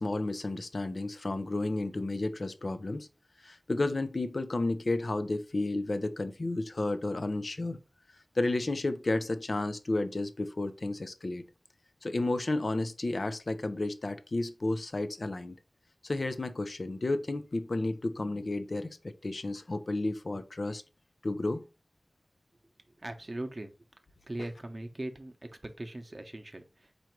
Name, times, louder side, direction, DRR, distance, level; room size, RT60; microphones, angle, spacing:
voice 1, 0.0-3.1 3.4-7.8 8.4-11.5 12.0-15.6 16.0-20.8 21.2-21.6, left 2 dB, 60° left, 0.5 m, -32 dB
voice 2, 23.0-23.7 24.3-25.3 25.6-26.9, right 1 dB, 40° right, 0.7 m, -40 dB
4.6 x 2.6 x 4.5 m
wide cardioid pair, 65°, 0 cm